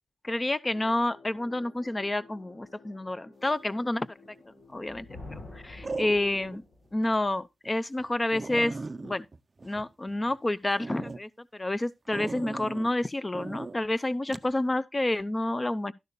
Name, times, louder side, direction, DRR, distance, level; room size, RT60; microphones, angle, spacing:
voice 1, 0.2-4.1 4.7-6.6 6.9-8.8 9.0-9.3 9.6-15.9, left 1 dB, 20° left, 0.7 m, -29 dB
sound 1, 0.7-6.5, left 3 dB, 75° left, 3.7 m, -56 dB
sound 2, 4.2-4.6 5.8-6.6 7.1-7.2 7.6-7.7 8.0-8.1 8.3-10.4 10.8-11.2 12.1-12.9 13.3-13.7 14.3-14.5, right 3 dB, 35° right, 0.5 m, -38 dB
Thunder, 4.7-7.0, left 2 dB, 90° left, 7.5 m, -46 dB
12.5 x 10.5 x 2.3 m
wide cardioid pair, 155°, 0 cm